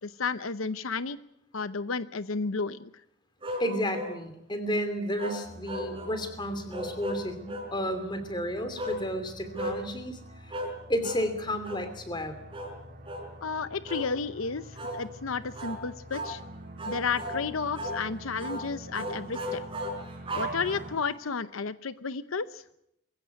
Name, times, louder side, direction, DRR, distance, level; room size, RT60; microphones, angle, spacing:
voice 1, 0.0-1.2 1.5-2.9 13.4-16.4 16.9-19.6 20.3-22.6, left 5 dB, 85° left, 14 dB, 0.7 m, -32 dB
sound 1, 3.4-4.2 5.2-6.2 6.7-7.7 8.8-9.0 9.5-9.8 10.5-10.8 11.0-11.3 11.6-11.9 12.5-12.8 13.0-13.3 13.9-14.1 14.8-15.0 15.5-15.8 16.1-16.4 16.8-17.4 17.8-18.0 18.4-18.6 18.9-21.1, equal, 25° right, 4.4 m, -35 dB
voice 2, 3.6-10.5 10.9-12.4, equal, 20° left, 10 dB, 2.8 m, -32 dB
sound 2, 5.4-21.0, right 1 dB, 45° right, 2.8 m, -47 dB
22.0 x 16.0 x 9.5 m, 0.78 s
head